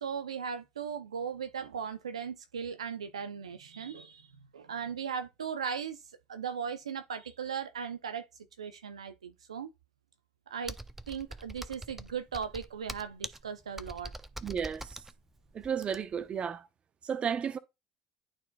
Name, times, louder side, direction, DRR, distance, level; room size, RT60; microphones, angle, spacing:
voice 1, 0.0-6.0 6.3-8.3 8.6-9.7 10.5-10.8 11.1-14.1, right 7 dB, 90° right, 0.6 m, -38 dB
Computer keyboard, 10.7-16.3, right 1 dB, 10° right, 0.6 m, -44 dB
voice 2, 14.4-15.0 15.5-16.7 17.0-17.6, right 7 dB, 35° right, 0.9 m, -33 dB
11.5 x 4.3 x 2.3 m
hypercardioid pair, 65°, 3 cm